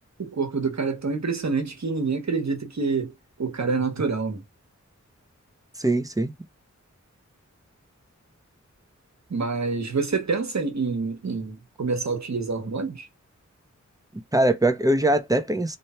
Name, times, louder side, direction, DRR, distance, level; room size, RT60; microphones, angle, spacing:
voice 1, 0.2-3.1 3.4-4.4 9.3-13.1, right 4 dB, 65° right, 1.3 m, -27 dB
voice 2, 5.8-6.3 14.3-15.8, right 1 dB, 10° right, 0.7 m, -22 dB
3.2 x 2.3 x 4.3 m
cardioid pair, 50°, 30 cm